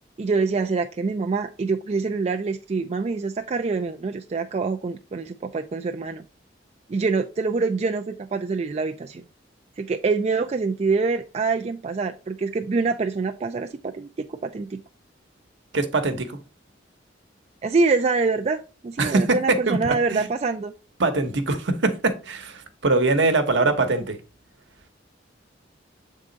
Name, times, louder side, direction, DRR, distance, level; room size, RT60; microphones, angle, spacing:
voice 1, 0.2-6.2 6.9-9.2 9.8-14.8 17.6-20.7, right 4 dB, 35° right, 0.3 m, -25 dB
voice 2, 15.7-16.3 19.0-19.8 20.1-20.3 21.0-24.2, right 3 dB, 75° right, 1.0 m, -22 dB
7.5 x 3.7 x 3.9 m
head